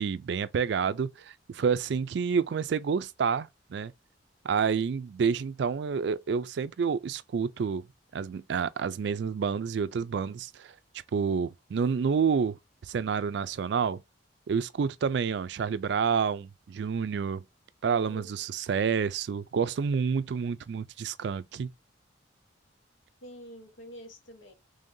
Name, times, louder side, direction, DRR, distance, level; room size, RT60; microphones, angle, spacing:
voice 1, 0.0-3.9 4.4-7.8 8.1-10.7 11.1-14.0 14.5-17.4 17.8-21.7, right 6 dB, 60° right, 0.3 m, -29 dB
voice 2, 17.8-18.5 23.2-24.5, equal, 90° left, 1.0 m, -47 dB
3.4 x 2.7 x 3.6 m
head